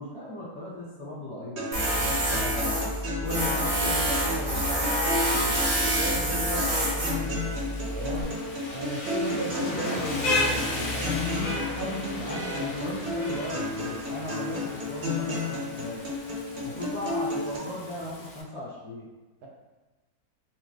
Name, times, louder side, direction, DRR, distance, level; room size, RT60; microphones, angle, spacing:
voice 1, 0.0-2.8 3.2-5.8 12.1-16.0 16.6-19.1, left 1 dB, 20° left, -10 dB, 1.1 m, -37 dB
sound 1, 1.6-17.6, left 2 dB, 55° right, 0.9 m, -33 dB
Tools, 1.7-8.2, right 1 dB, 40° right, 0.5 m, -27 dB
Rain, 3.3-18.4, left 2 dB, 70° left, 0.9 m, -36 dB
voice 2, 5.9-7.6 7.9-8.3 8.7-10.5 10.7-12.7, right 1 dB, 80° right, -2 dB, 1.1 m, -35 dB
3.0 x 2.1 x 3.2 m, 1.2 s
omnidirectional pair, 1.6 m